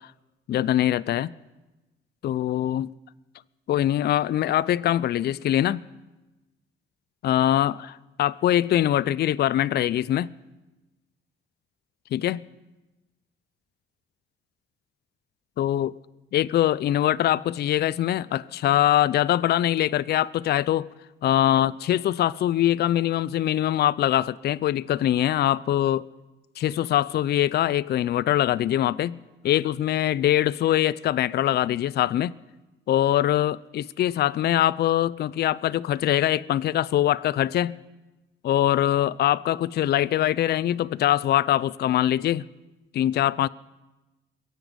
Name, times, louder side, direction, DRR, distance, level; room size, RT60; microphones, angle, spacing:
voice 1, 0.5-1.3 2.2-2.9 3.7-5.8 7.2-10.3 12.1-12.4 15.6-15.9 16.3-20.9 21.2-26.1 26.6-29.2 29.4-32.3 32.9-37.7 38.4-42.4 42.9-43.5, left 12 dB, 55° left, 0.4 m, -23 dB
23.0 x 8.0 x 5.2 m
cardioid pair, 90°, 20 cm